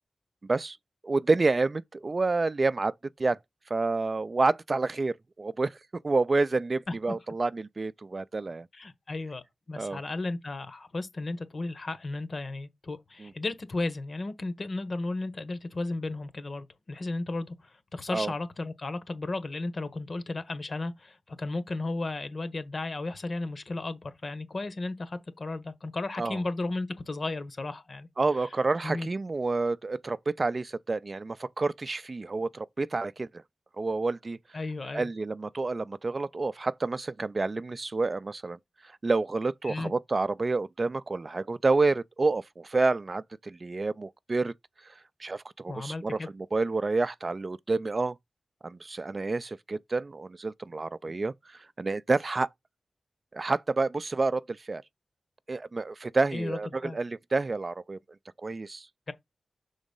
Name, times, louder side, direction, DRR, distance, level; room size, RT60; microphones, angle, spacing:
voice 1, 1.0-3.4 3.7-5.8 6.0-8.7 9.8-10.0 13.2-13.3 18.1-18.3 26.2-26.4 28.2-33.4 33.8-34.4 34.9-38.6 38.8-44.5 44.9-45.0 45.2-48.2 48.6-52.5 53.3-54.8 55.5-58.0 58.4-58.9, right 3 dB, 45° right, 0.4 m, -29 dB
voice 2, 8.7-28.1 28.8-29.1 34.5-35.1 39.6-39.9 45.7-46.3 56.3-57.0 59.1-59.2, left 2 dB, 55° left, 1.2 m, -34 dB
6.3 x 4.0 x 5.3 m
cardioid pair, 65°, 0 cm